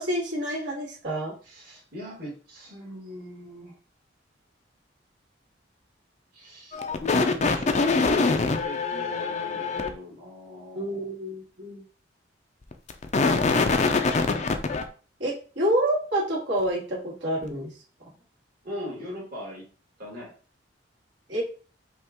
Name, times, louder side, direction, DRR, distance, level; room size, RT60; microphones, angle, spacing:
voice 1, 0.0-1.3 10.7-11.8 15.2-17.7 18.0-18.1 21.3-21.4, right 1 dB, 75° right, -6 dB, 2.1 m, -28 dB
voice 2, 1.4-3.7 6.3-11.1 18.6-19.6 20.0-20.3, left 1 dB, 55° right, -6 dB, 1.9 m, -40 dB
sound 1, 6.7-9.9 12.7-14.8, left 4 dB, 40° left, 0.5 m, -24 dB
5.4 x 2.4 x 3.6 m, 0.38 s
head